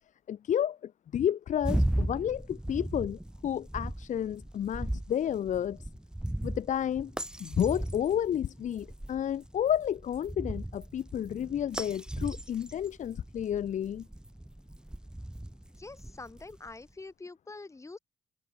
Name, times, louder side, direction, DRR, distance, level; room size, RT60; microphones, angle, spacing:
voice 1, 0.3-5.8 6.4-7.1 7.4-14.0, left 10 dB, 70° left, 1.5 m, -31 dB
sound 1, 1.6-16.7, right 1 dB, 5° right, 1.2 m, -37 dB
voice 2, 15.8-18.0, left 3 dB, 20° left, 2.8 m, -45 dB
cardioid pair, 95°, 13 cm